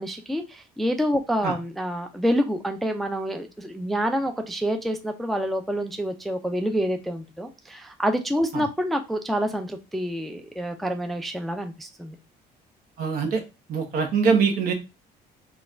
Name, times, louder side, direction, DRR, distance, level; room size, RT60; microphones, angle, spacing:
voice 1, 0.0-12.2, equal, ahead, 5 dB, 0.3 m, -27 dB
voice 2, 13.0-13.4 13.7-14.7, right 5 dB, 60° right, 4 dB, 1.0 m, -23 dB
4.0 x 2.3 x 2.5 m, 0.27 s
cardioid pair, 110°, 17 cm